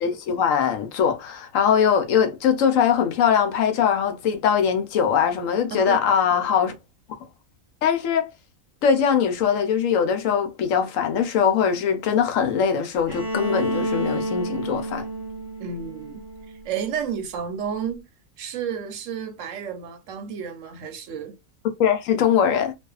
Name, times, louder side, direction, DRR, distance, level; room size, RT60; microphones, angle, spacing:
voice 1, 0.0-6.7 7.8-8.3 8.8-15.1 21.8-22.7, left 7 dB, 75° left, 1.0 m, -21 dB
voice 2, 5.7-6.7 15.6-16.2 16.6-18.1 18.4-21.4, right 7 dB, 75° right, 0.9 m, -32 dB
Bowed string instrument, 13.1-16.9, right 1 dB, 20° left, 1.0 m, -30 dB
2.5 x 2.3 x 2.3 m
omnidirectional pair, 1.4 m